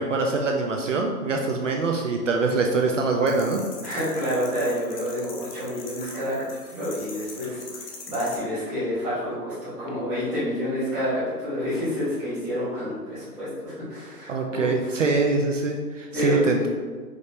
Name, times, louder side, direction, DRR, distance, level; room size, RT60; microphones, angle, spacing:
voice 1, 0.0-3.6 14.3-16.7, right 3 dB, 50° right, 2 dB, 0.5 m, -24 dB
sound 1, 3.3-8.4, left 4 dB, 35° left, 0.6 m, -42 dB
voice 2, 3.8-6.3 6.7-14.7 16.1-16.5, equal, 5° right, -15 dB, 0.6 m, -28 dB
5.0 x 3.1 x 2.7 m, 1.5 s
hypercardioid pair, 145°, 48 cm